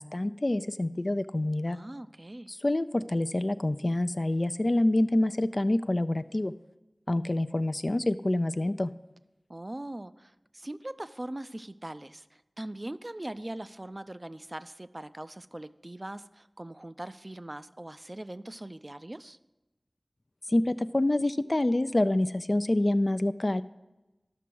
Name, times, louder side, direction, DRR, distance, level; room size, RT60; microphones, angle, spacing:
voice 1, 0.0-1.8 2.6-6.5 7.1-8.9 20.5-23.6, left 1 dB, 50° left, 11 dB, 0.3 m, -27 dB
voice 2, 1.7-2.5 9.5-19.4, right 1 dB, 40° right, 13 dB, 0.4 m, -41 dB
13.0 x 6.0 x 4.6 m, 1.0 s
wide cardioid pair, 45°, 0 cm